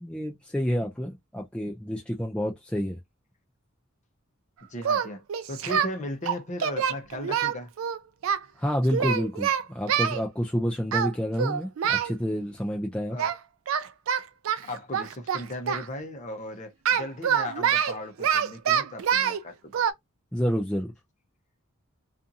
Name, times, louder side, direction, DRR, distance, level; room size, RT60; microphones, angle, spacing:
voice 1, 0.0-3.0 8.6-13.2 20.3-20.9, equal, 5° left, 0.3 m, -29 dB
voice 2, 4.7-7.7 13.1-13.4 14.7-19.7, left 1 dB, 35° left, 0.6 m, -37 dB
Singing, 4.8-5.9 6.3-8.4 8.9-10.2 10.9-11.1 11.4-12.1 13.2-13.4 13.7-15.9 16.8-19.4 19.7-19.9, right 8 dB, 70° right, 0.4 m, -26 dB
2.6 x 2.4 x 2.6 m
head